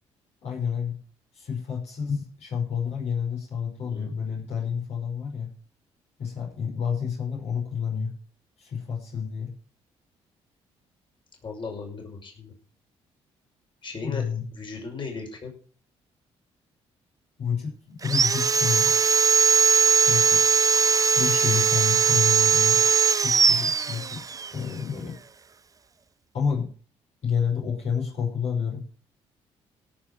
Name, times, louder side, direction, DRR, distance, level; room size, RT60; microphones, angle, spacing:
voice 1, 0.4-1.0 1.3-5.5 6.2-8.1 8.6-9.5 14.0-14.4 17.4-18.9 20.0-20.5 21.2-22.8 23.2-24.2 24.5-25.2 26.3-26.7 27.2-28.8, left 6 dB, 65° left, -2 dB, 5.5 m, -29 dB
voice 2, 11.4-12.5 13.8-15.5, left 4 dB, 40° left, 0 dB, 5.9 m, -37 dB
Sawing, 18.0-24.5, right 5 dB, 30° right, 0.5 m, -20 dB
17.5 x 6.3 x 6.1 m, 0.41 s
supercardioid pair, 70°, 12 cm